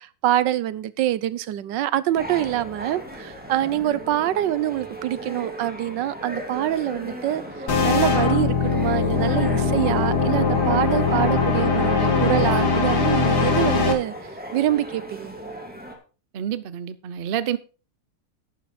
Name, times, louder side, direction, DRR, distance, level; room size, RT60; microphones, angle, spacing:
voice 1, 0.0-14.1 14.5-15.3, right 13 dB, 85° right, 1.4 m, -25 dB
sound 1, 2.2-15.9, right 1 dB, 5° right, 2.3 m, -37 dB
sound 2, 7.7-13.9, left 4 dB, 65° left, 2.3 m, -21 dB
voice 2, 16.3-17.6, right 9 dB, 65° right, 0.5 m, -28 dB
11.5 x 9.9 x 4.2 m
omnidirectional pair, 1.9 m